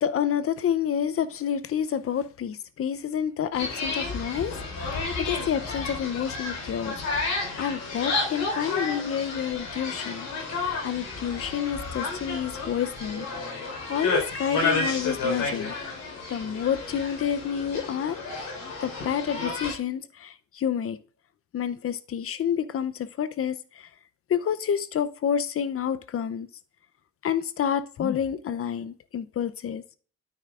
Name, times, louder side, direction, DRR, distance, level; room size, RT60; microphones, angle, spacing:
voice 1, 0.0-4.5 4.8-10.3 10.5-15.7 16.3-18.2 18.8-21.0 21.5-23.9 24.3-26.5 27.2-29.8, left 8 dB, 50° left, 0.7 m, -29 dB
sound 1, 3.5-19.7, left 3 dB, 80° left, 4.4 m, -31 dB
9.2 x 9.1 x 2.5 m
cardioid pair, 90°, 30 cm